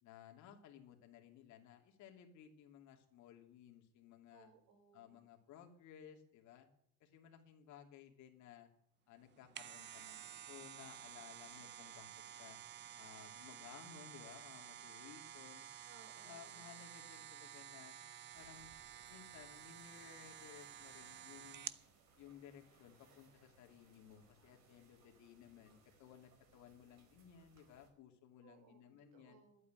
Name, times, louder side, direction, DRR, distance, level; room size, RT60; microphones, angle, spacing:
voice 1, 0.0-4.5 4.9-6.7 7.0-8.7 9.1-12.1 12.4-12.6 12.9-15.7 16.2-17.9 18.3-18.7 19.1-21.7 22.2-29.4, left 9 dB, 55° left, 3 dB, 2.7 m, -58 dB
voice 2, 4.3-5.2 15.9-16.8 28.4-29.6, right 5 dB, 70° right, 4 dB, 4.1 m, -65 dB
sound 1, 9.3-21.9 22.3-22.4, right 10 dB, 30° right, 0.6 m, -52 dB
sound 2, 18.3-27.9, right 4 dB, 50° right, 4.0 m, -69 dB
12.0 x 8.4 x 8.9 m, 0.71 s
cardioid pair, 140°, 34 cm